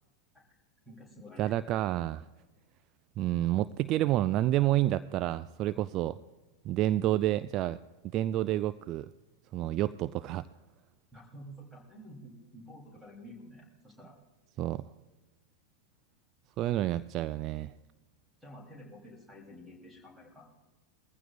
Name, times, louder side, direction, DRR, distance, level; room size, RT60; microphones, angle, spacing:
voice 1, 0.9-1.5 11.1-14.2 18.4-20.5, equal, 5° right, 0 dB, 3.7 m, -50 dB
voice 2, 1.4-2.3 3.2-6.2 6.6-7.8 8.0-9.1 9.5-10.5 14.6-14.8 16.6-17.7, right 14 dB, 35° right, 15 dB, 0.3 m, -29 dB
21.0 x 15.0 x 2.6 m, 1.2 s
figure-of-eight pair, 90°, 0 cm